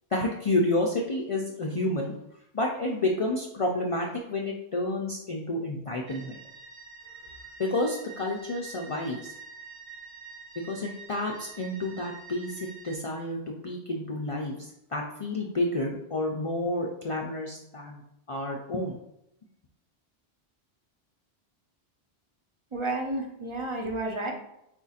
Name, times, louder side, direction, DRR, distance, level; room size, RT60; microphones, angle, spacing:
voice 1, 0.1-2.1 2.5-6.4 7.6-9.3 10.6-18.0 18.3-19.0, left 1 dB, 45° left, -1 dB, 0.4 m, -30 dB
sound 1, 6.1-13.0, right 5 dB, 70° right, 1.0 m, -46 dB
voice 2, 22.7-24.3, right 2 dB, 35° right, 2 dB, 0.7 m, -31 dB
4.3 x 4.1 x 2.4 m, 0.82 s
omnidirectional pair, 1.1 m